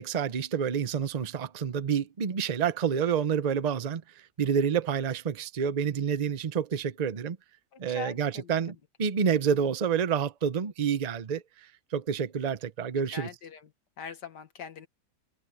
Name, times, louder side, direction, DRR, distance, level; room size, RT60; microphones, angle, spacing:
voice 1, 0.0-7.4 7.8-13.3, right 7 dB, 40° right, 0.6 m, -28 dB
voice 2, 7.7-8.5 13.1-13.7 14.0-14.9, left 6 dB, 85° left, 2.1 m, -42 dB
omnidirectional pair, 1.8 m